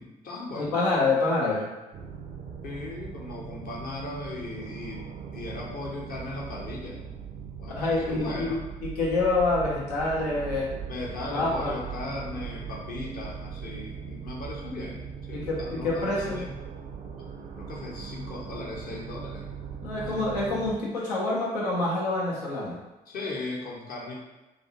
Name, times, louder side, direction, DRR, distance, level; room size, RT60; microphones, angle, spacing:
voice 1, 0.0-0.8 2.6-7.0 7.6-8.6 10.9-15.0 15.3-16.5 17.6-19.5 19.9-20.3 23.1-24.2, left 2 dB, 45° left, -3 dB, 0.8 m, -37 dB
voice 2, 0.5-1.7 7.7-10.7 11.3-11.7 15.3-16.4 19.8-22.8, left 2 dB, 80° left, -4 dB, 0.6 m, -27 dB
sound 1, 1.9-20.8, right 7 dB, 45° right, 0.4 m, -40 dB
2.4 x 2.3 x 2.8 m, 1.1 s
figure-of-eight pair, 40°, 20 cm